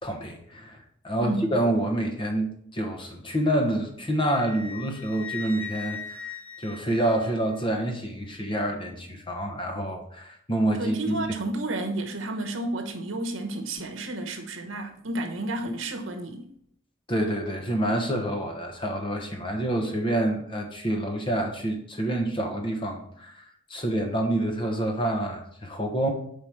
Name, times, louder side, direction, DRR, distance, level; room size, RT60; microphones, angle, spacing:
voice 1, 0.0-11.4 17.1-26.1, right 1 dB, 25° left, 1.0 m, -28 dB
Wind instrument woodwind instrument, 4.2-7.7, left 5 dB, 5° left, 0.7 m, -39 dB
voice 2, 10.8-16.5, right 2 dB, 70° right, 1.0 m, -31 dB
5.1 x 4.8 x 5.9 m
head